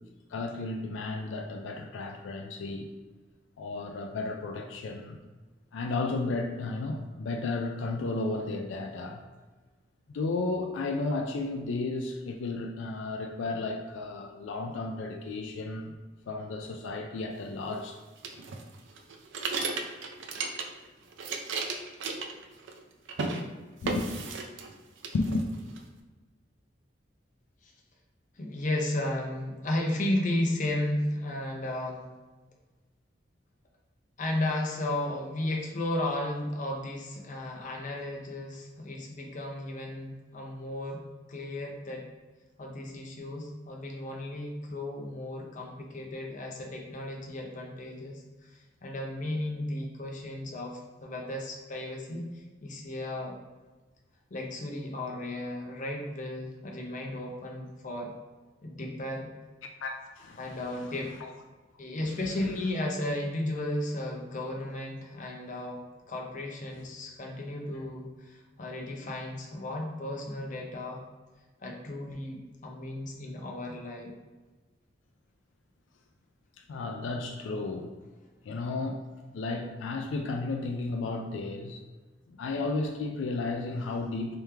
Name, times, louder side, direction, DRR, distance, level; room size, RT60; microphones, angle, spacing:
voice 1, 0.3-2.9 3.6-5.2 5.7-9.2 10.1-15.9 16.3-18.0 23.8-24.2 25.1-25.5 59.8-60.6 60.9-61.0 61.2-61.3 76.7-77.9 78.5-79.0 79.3-81.8 82.3-84.4, left 3 dB, 85° left, 3 dB, 0.4 m, -33 dB
sound 1, 18.2-20.9 21.1-22.8 23.1-23.4 23.8-24.7 25.0-25.8, right 4 dB, 80° right, 0.5 m, -34 dB
voice 2, 28.3-32.0 34.2-41.0 41.3-42.0 42.6-53.3 54.3-58.1 58.6-59.3 60.4-61.1 61.8-65.8 66.1-71.0 71.6-74.1, left 1 dB, 45° left, 0 dB, 0.7 m, -34 dB
3.5 x 3.1 x 3.3 m, 1.3 s
head